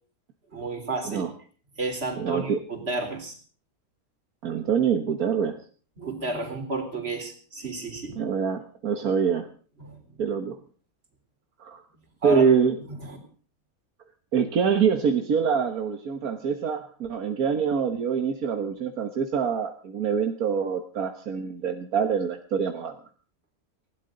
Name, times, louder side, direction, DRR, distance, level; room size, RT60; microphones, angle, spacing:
voice 1, 0.5-1.2 1.8-3.4 6.0-8.2 9.8-10.2 12.2-12.5 13.1-13.2, right 2 dB, 45° right, 4 dB, 4.2 m, -32 dB
voice 2, 2.2-2.6 4.4-5.6 8.2-9.5 10.2-10.6 11.6-11.8 12.2-12.8 14.3-22.9, right 6 dB, 75° right, 6 dB, 1.8 m, -25 dB
20.0 x 16.5 x 3.9 m, 0.42 s
omnidirectional pair, 1.5 m